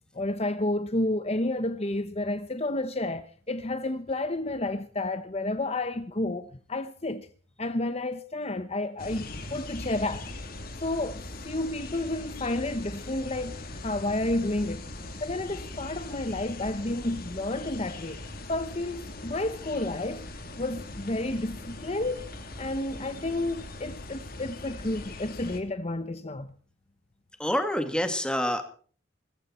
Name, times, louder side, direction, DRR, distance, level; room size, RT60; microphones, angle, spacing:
voice 1, 0.1-7.3 7.6-10.3 10.8-14.9 15.2-18.2 18.5-20.3 20.6-22.2 22.6-26.5, left 2 dB, 35° left, 1.0 m, -31 dB
sound 1, 9.0-25.6, left 2 dB, 50° left, 3.3 m, -40 dB
voice 2, 27.4-28.7, equal, 5° left, 2.2 m, -27 dB
21.5 x 15.0 x 4.4 m
head